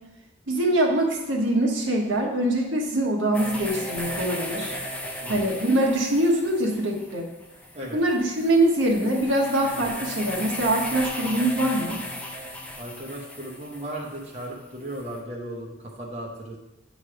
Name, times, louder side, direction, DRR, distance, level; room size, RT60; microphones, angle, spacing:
voice 1, 0.5-4.7 5.3-7.3 7.9-12.0, right 1 dB, 70° right, -1 dB, 1.3 m, -23 dB
sound 1, 3.3-15.2, left 1 dB, 5° left, 0.6 m, -36 dB
voice 2, 12.8-16.6, right 1 dB, 35° right, -2 dB, 1.0 m, -36 dB
9.0 x 3.2 x 5.0 m, 0.95 s
head